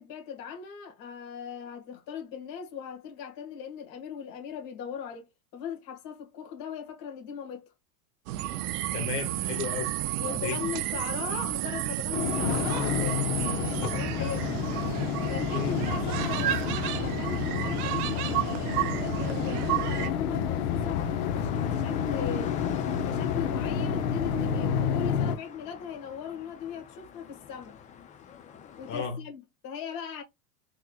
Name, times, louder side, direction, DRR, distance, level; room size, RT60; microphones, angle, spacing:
voice 1, 0.0-7.7 10.2-14.6 15.3-22.6 23.0-27.8 28.8-30.2, left 7 dB, 45° left, 1.6 m, -39 dB
sound 1, 8.3-20.1, right 14 dB, 70° right, 0.6 m, -31 dB
voice 2, 8.9-10.6 15.5-15.8 28.9-29.2, left 7 dB, 80° left, 1.8 m, -34 dB
sound 2, 12.1-25.4, left 8 dB, 65° left, 0.8 m, -29 dB
sound 3, 20.8-29.1, left 8 dB, 15° left, 0.4 m, -46 dB
3.7 x 3.0 x 2.3 m
supercardioid pair, 115°, 47 cm